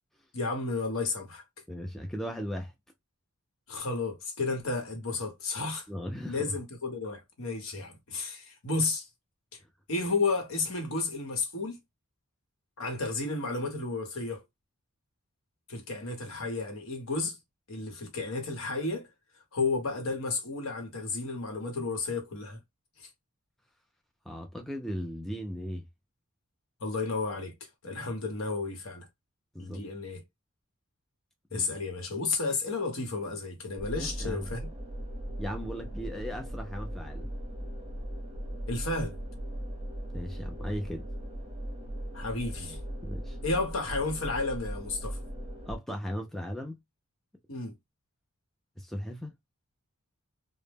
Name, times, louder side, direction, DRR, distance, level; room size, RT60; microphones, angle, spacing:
voice 1, 0.3-1.4 3.7-5.9 6.2-9.1 9.9-11.8 12.8-14.4 15.7-17.4 17.7-19.1 19.5-22.6 23.0-23.1 26.8-27.5 27.8-29.1 29.6-30.2 31.5-34.7 38.7-39.2 42.1-42.8 43.4-45.2 47.5-47.7, left 3 dB, 65° left, 0.9 m, -32 dB
voice 2, 1.7-2.7 5.9-6.4 24.3-25.8 29.5-29.8 31.5-31.7 34.0-34.5 35.4-37.3 40.1-41.0 43.0-43.4 45.7-46.8 48.8-49.3, equal, ahead, 0.3 m, -37 dB
sound 1, 33.8-45.8, equal, 25° right, 0.8 m, -38 dB
2.0 x 2.0 x 3.2 m
head